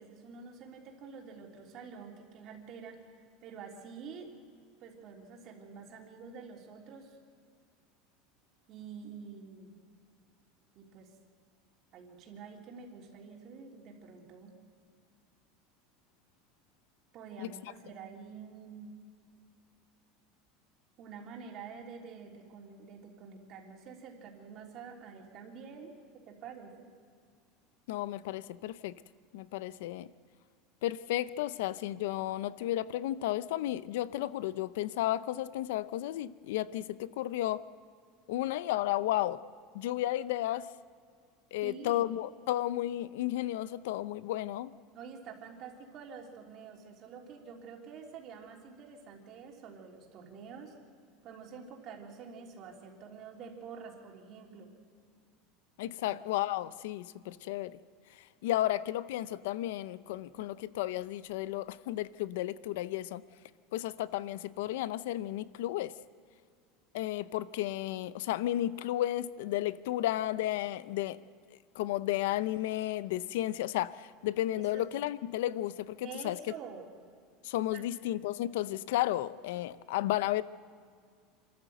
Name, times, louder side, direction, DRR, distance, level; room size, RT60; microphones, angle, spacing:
voice 1, 0.0-4.3 4.8-7.2 8.7-9.8 10.8-11.2 11.9-14.5 17.1-18.9 21.0-26.0 26.3-26.9 41.6-42.0 44.9-50.8 51.2-54.7 56.0-56.2 74.6-74.8 76.0-76.9 77.7-77.9, right 6 dB, 40° right, 0 dB, 3.4 m, -48 dB
voice 2, 27.9-28.9 29.3-30.1 30.8-37.6 38.3-39.4 39.7-40.7 41.5-44.7 55.8-57.8 58.4-63.2 63.7-65.9 66.9-71.2 71.7-76.4 77.4-80.4, left 14 dB, 80° left, 16 dB, 0.6 m, -33 dB
27.0 x 14.0 x 7.9 m, 2.2 s
supercardioid pair, 155°, 0 cm